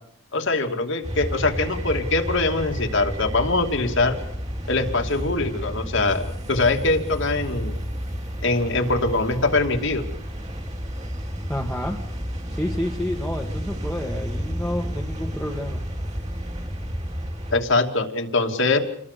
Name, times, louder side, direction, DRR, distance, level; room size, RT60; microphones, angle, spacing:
voice 1, 0.3-4.2 4.7-7.8 8.4-10.0 17.5-18.8, left 3 dB, 55° left, 4 dB, 2.7 m, -23 dB
sound 1, 1.0-17.6, equal, 30° right, 4.8 m, -31 dB
voice 2, 11.5-12.0 12.5-15.8, left 1 dB, 5° left, -2 dB, 2.2 m, -29 dB
29.0 x 22.0 x 6.9 m, 0.70 s
head